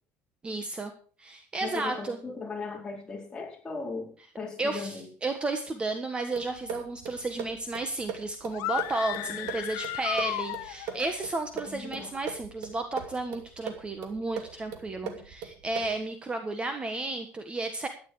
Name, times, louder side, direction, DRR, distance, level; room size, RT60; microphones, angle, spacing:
voice 1, 0.4-0.9 1.2-2.2 4.6-17.9, right 2 dB, 20° right, 7 dB, 1.4 m, -33 dB
voice 2, 1.6-5.1 9.2-9.5 11.7-12.1 15.0-15.2, left 4 dB, 15° left, -2 dB, 4.8 m, -38 dB
sound 1, 6.3-16.1, right 7 dB, 90° right, 2.6 m, -41 dB
sound 2, 8.5-11.1, left 16 dB, 85° left, 0.7 m, -34 dB
13.5 x 10.5 x 4.9 m, 0.42 s
cardioid pair, 135°, 5 cm